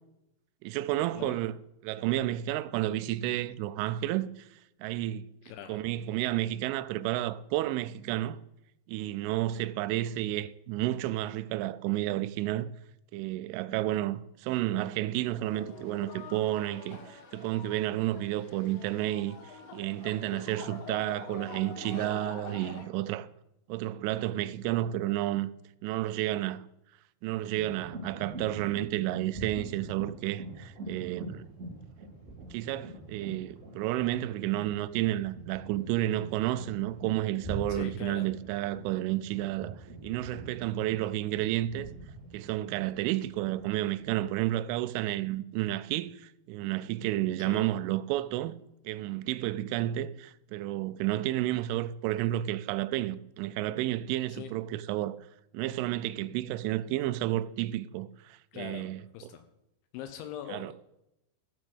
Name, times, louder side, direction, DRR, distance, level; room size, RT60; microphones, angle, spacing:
voice 1, 0.6-1.5 1.8-5.3 5.7-8.4 8.9-12.7 13.1-23.3 23.7-25.5 25.8-26.7 27.2-31.5 32.5-41.9 42.3-48.5 48.8-55.2 55.5-59.0 60.5-60.7, right 15 dB, 85° right, 3.1 m, -31 dB
voice 2, 5.4-5.8 37.7-38.3 47.4-47.7 54.3-54.5 58.5-59.4 59.9-60.7, left 9 dB, 80° left, 3.2 m, -42 dB
sound 1, 15.4-22.8, left 4 dB, 60° left, 2.7 m, -45 dB
sound 2, 27.5-44.3, right 2 dB, 20° right, 2.6 m, -44 dB
14.0 x 6.2 x 7.9 m
omnidirectional pair, 5.5 m